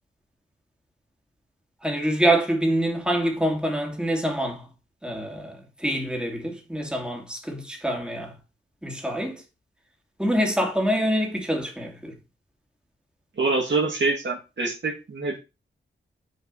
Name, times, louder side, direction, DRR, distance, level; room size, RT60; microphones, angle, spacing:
voice 1, 1.8-4.6 5.0-8.3 8.8-9.4 10.2-12.1, right 1 dB, 5° right, 2.9 m, -25 dB
voice 2, 13.4-15.4, right 3 dB, 60° right, 2.3 m, -25 dB
7.7 x 5.1 x 5.6 m
cardioid pair, 65°, 21 cm